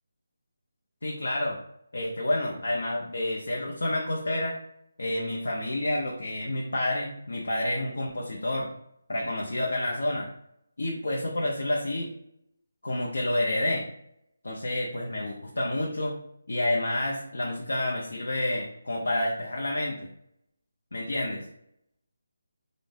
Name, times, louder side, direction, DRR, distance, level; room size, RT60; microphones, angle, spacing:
voice 1, 1.0-1.6 1.9-4.6 5.0-8.7 9.1-10.3 10.8-12.1 12.8-13.9 14.4-16.2 16.5-20.1 20.9-21.4, left 1 dB, 80° left, -1 dB, 0.7 m, -29 dB
4.0 x 2.7 x 3.4 m, 0.74 s
figure-of-eight pair, 160°, 0 cm